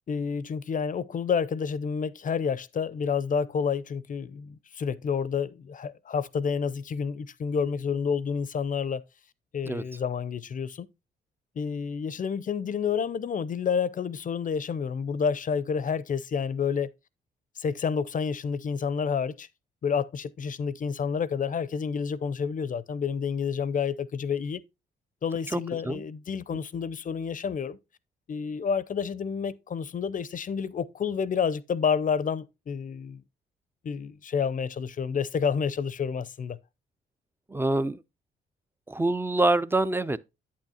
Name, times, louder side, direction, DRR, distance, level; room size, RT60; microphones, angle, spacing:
voice 1, 0.1-9.0 9.5-10.9 11.6-16.9 17.6-19.5 19.8-24.6 25.2-27.8 28.3-33.2 33.8-36.6, left 6 dB, 40° left, 0.6 m, -29 dB
voice 2, 25.5-26.0 26.5-26.6 37.5-38.0 38.9-40.2, right 2 dB, 10° right, 0.5 m, -26 dB
8.5 x 8.3 x 2.8 m
hypercardioid pair, 50°, 20 cm